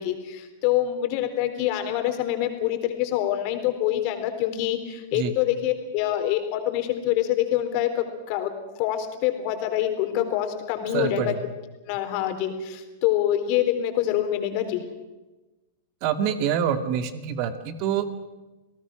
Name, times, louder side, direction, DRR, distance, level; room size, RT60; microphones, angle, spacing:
voice 1, 0.0-8.5 8.8-11.3 11.9-14.8, left 12 dB, 50° left, 6 dB, 3.8 m, -25 dB
voice 2, 10.9-11.4 16.0-18.1, right 8 dB, 50° right, 9 dB, 2.3 m, -26 dB
28.0 x 18.0 x 6.2 m, 1.1 s
hypercardioid pair, 105°, 0 cm